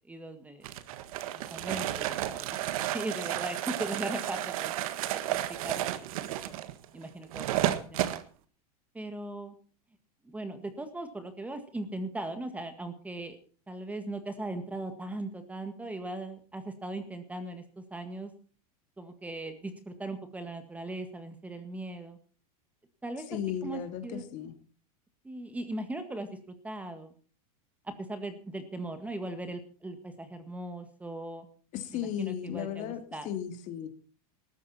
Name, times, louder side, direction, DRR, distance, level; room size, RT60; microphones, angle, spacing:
voice 1, 0.1-0.7 1.3-2.6 2.9-6.6 6.9-8.2 8.9-9.5 10.2-13.4 13.7-18.3 19.0-22.2 23.0-23.3 23.6-24.2 25.2-26.4 26.6-27.1 27.8-31.5 31.9-33.3, right 2 dB, 5° right, 9 dB, 1.8 m, -39 dB
sound 1, 0.6-8.2, right 13 dB, 65° right, 1.6 m, -32 dB
voice 2, 23.3-24.5 31.7-33.0 33.2-33.9, left 10 dB, 40° left, 7 dB, 2.7 m, -35 dB
19.0 x 13.5 x 4.3 m, 0.39 s
supercardioid pair, 145°, 19 cm